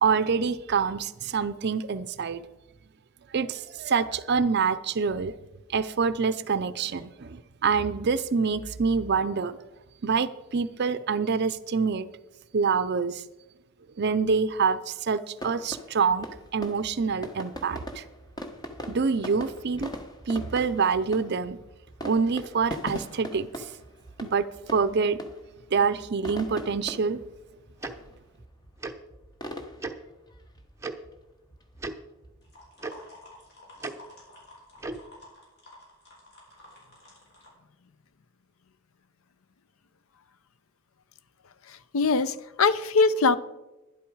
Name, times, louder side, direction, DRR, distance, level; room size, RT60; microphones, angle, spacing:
voice 1, 0.0-2.5 3.3-5.3 5.7-9.7 10.0-12.1 12.5-13.2 14.0-16.3 16.5-18.0 18.9-19.9 20.3-21.6 22.0-23.7 24.2-25.2 25.7-27.2, right 5 dB, 50° right, 0.5 m, -26 dB
sound 1, 15.4-33.0, equal, 20° left, 1.0 m, -42 dB
Tick-tock, 27.8-27.9 28.8-28.9 29.8-29.9 30.8-30.9 31.8-31.9 32.8-32.9 33.8-33.9 34.8-35.0, right 3 dB, 15° right, 0.7 m, -34 dB
sound 2, 32.4-37.5, left 1 dB, 50° left, 5.1 m, -51 dB
voice 2, 41.9-43.4, left 4 dB, 75° left, 0.6 m, -22 dB
11.5 x 11.0 x 4.7 m
head